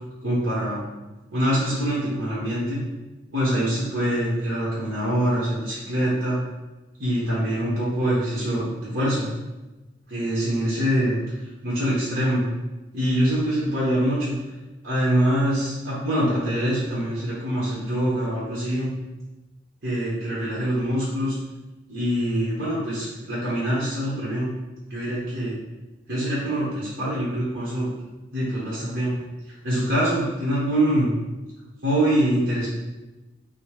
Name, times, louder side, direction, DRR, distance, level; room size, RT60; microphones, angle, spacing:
voice 1, 0.2-0.8 1.3-2.8 3.3-6.4 7.0-9.3 10.1-11.2 11.6-12.5 12.9-14.3 14.8-18.9 19.8-21.3 21.9-24.5 24.9-25.6 26.1-27.9 28.3-29.2 29.6-31.1 31.8-32.7, equal, 55° right, -8 dB, 1.1 m, -24 dB
5.3 x 2.1 x 2.9 m, 1.1 s
head